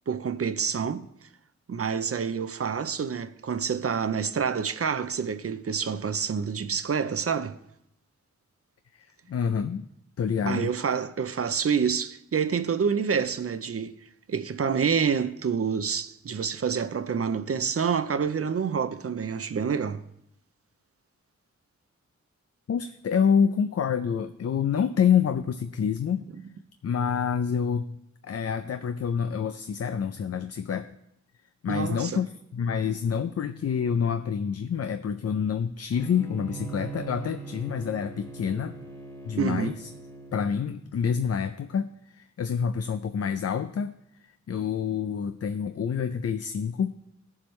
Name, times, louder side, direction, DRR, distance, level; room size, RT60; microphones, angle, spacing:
voice 1, 0.1-1.0 1.7-7.6 10.5-14.0 14.3-20.0 31.7-32.2 39.4-39.8, right 6 dB, 50° right, 0.6 m, -27 dB
voice 2, 8.9-9.9 10.2-10.7 22.7-26.2 26.8-31.0 31.6-38.7 39.3-39.9 40.3-43.9 44.2-46.9, left 7 dB, 55° left, 0.5 m, -27 dB
Bowed string instrument, 35.9-40.5, right 4 dB, 10° left, 1.7 m, -41 dB
17.0 x 7.2 x 3.2 m
cardioid pair, 60°, 29 cm